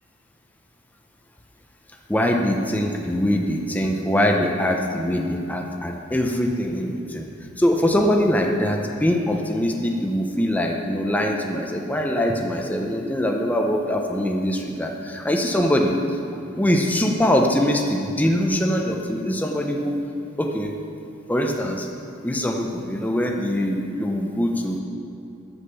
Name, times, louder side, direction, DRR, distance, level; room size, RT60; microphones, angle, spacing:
voice 1, 2.1-7.3 7.6-15.9 16.6-20.0 20.4-20.7 21.3-21.9 22.2-24.8, equal, 10° left, 1 dB, 0.7 m, -23 dB
10.0 x 7.4 x 6.8 m, 2.7 s
head